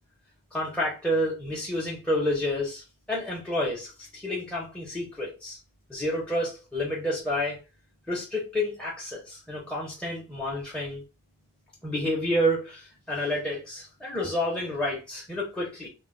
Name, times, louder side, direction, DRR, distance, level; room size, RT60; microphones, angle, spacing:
voice 1, 0.5-5.6 5.9-7.6 8.1-11.0 11.8-15.9, left 1 dB, 5° left, -5 dB, 0.5 m, -29 dB
2.2 x 2.1 x 3.6 m, 0.28 s
head